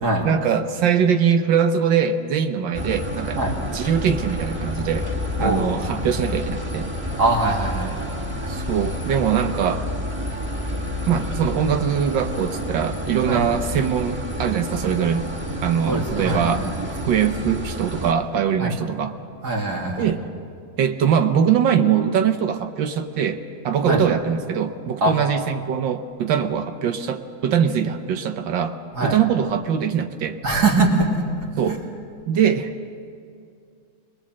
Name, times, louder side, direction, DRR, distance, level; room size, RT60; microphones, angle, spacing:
voice 1, 0.2-3.4 3.7-5.1 5.4-6.9 8.5-9.9 11.1-15.3 15.6-16.7 17.0-19.2 20.0-20.2 20.8-30.4 31.6-31.8 32.3-32.7, right 8 dB, 80° right, 7 dB, 1.6 m, -22 dB
sound 1, 2.7-18.1, left 1 dB, 5° right, 2.1 m, -29 dB
voice 2, 5.4-5.8 7.2-8.1 13.3-13.5 15.9-16.8 18.6-18.8 19.4-20.1 23.8-24.0 25.0-25.2 28.9-29.2 30.4-31.1 31.7-31.8, right 2 dB, 60° right, -1 dB, 3.3 m, -22 dB
26.0 x 20.5 x 7.6 m, 2.3 s
omnidirectional pair, 2.0 m